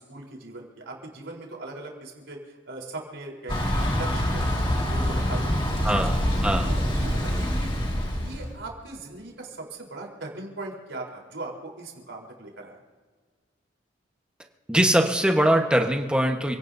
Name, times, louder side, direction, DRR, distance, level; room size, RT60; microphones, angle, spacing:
voice 1, 0.0-6.2 6.6-7.7 8.0-12.8, right 2 dB, 80° right, -1 dB, 4.1 m, -40 dB
Thunder / Bicycle, 3.5-8.5, equal, 25° left, 2.1 m, -25 dB
voice 2, 5.8-6.2 6.4-6.7 14.7-16.6, right 1 dB, 5° right, 3 dB, 1.3 m, -21 dB
29.0 x 17.5 x 2.8 m, 1.5 s
head